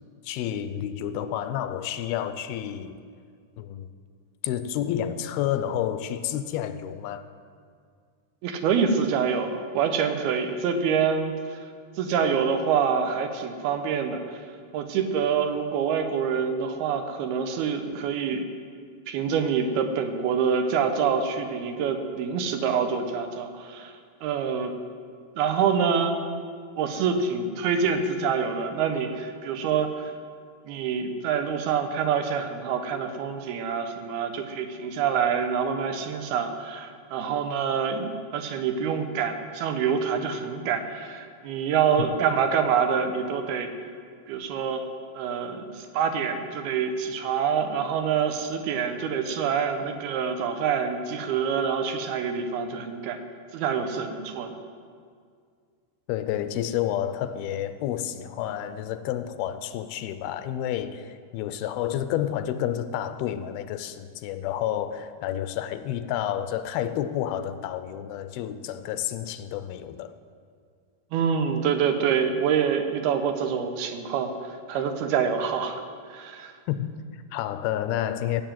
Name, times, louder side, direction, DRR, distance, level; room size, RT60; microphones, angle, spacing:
voice 1, 0.2-3.0 3.6-3.9 4.4-7.3 56.1-70.2 76.7-78.4, left 11 dB, 80° left, 12 dB, 2.4 m, -30 dB
voice 2, 8.4-11.3 12.0-14.4 14.7-18.5 19.1-23.9 24.2-24.7 25.4-26.2 26.8-30.1 30.7-43.7 44.3-44.8 45.1-53.2 53.5-54.5 71.1-74.3 74.7-75.8 76.1-76.5, right 6 dB, 85° right, 6 dB, 2.9 m, -26 dB
15.0 x 7.1 x 9.0 m, 2.1 s
omnidirectional pair, 4.4 m